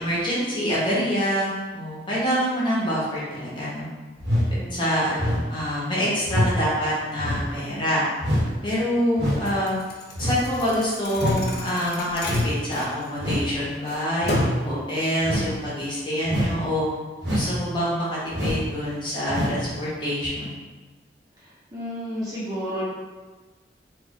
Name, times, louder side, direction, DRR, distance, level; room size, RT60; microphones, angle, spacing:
voice 1, 0.0-3.9 4.7-8.0 8.6-9.8 10.2-16.9 17.3-20.5, equal, 25° left, -7 dB, 1.0 m, -26 dB
sound 1, 4.2-4.5 5.2-5.5 6.2-6.5 7.2-7.5 8.2-8.5 9.2-9.5 10.1-10.5 11.2-11.5 12.2-12.5 13.2-13.5 14.2-14.5 15.2-15.5 16.3-16.6 17.2-17.6 18.3-18.7 19.3-19.6 20.2-20.3, equal, 75° right, 1.0 m, -25 dB
voice 2, 4.6-4.9 21.4-22.8, equal, 20° right, -8 dB, 0.7 m, -32 dB
Thump thud, 9.4-13.5 13.9-14.7, left 2 dB, 60° left, 0.5 m, -35 dB
3.1 x 2.4 x 3.6 m, 1.3 s
head